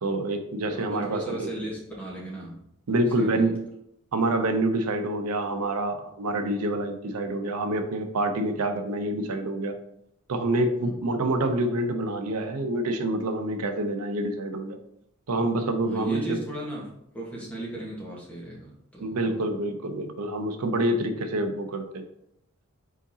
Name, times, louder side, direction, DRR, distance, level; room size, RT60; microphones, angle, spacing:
voice 1, 0.0-1.5 2.9-3.7 4.1-9.7 10.3-14.8 15.3-16.4 19.0-22.0, right 1 dB, 85° right, 7 dB, 0.6 m, -27 dB
voice 2, 0.7-2.6 3.0-3.5 10.8-11.0 15.8-19.5, right 1 dB, 5° left, -4 dB, 1.2 m, -37 dB
4.9 x 3.9 x 2.7 m, 0.78 s
head